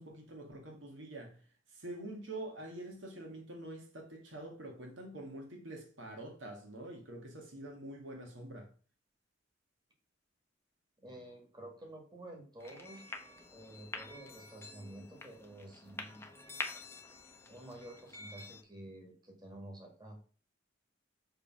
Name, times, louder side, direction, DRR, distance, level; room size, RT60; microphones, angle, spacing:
voice 1, 0.0-1.4 1.7-8.7, right 1 dB, 80° right, 1.9 m, -46 dB
voice 2, 11.0-13.0 13.5-16.3 17.5-20.2, right 1 dB, 20° right, 2.0 m, -50 dB
sound 1, 12.6-18.6, left 3 dB, 15° left, 0.8 m, -47 dB
6.6 x 3.6 x 6.0 m
head